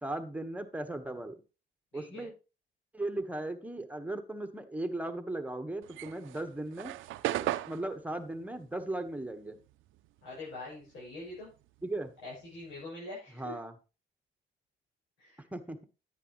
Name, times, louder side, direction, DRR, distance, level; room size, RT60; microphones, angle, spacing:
voice 1, 0.0-1.4 1.9-2.3 2.9-6.9 7.7-9.6 11.8-12.1 13.4-13.7 15.5-15.8, right 2 dB, 5° right, 6 dB, 1.4 m, -37 dB
voice 2, 1.9-2.3 10.2-11.5 12.2-13.6 15.2-15.4, left 2 dB, 80° left, -6 dB, 7.0 m, -44 dB
sound 1, 5.8-10.5 10.8-12.8, right 15 dB, 90° right, 0.6 m, -37 dB
10.0 x 9.9 x 3.2 m, 0.31 s
cardioid pair, 90°, 20 cm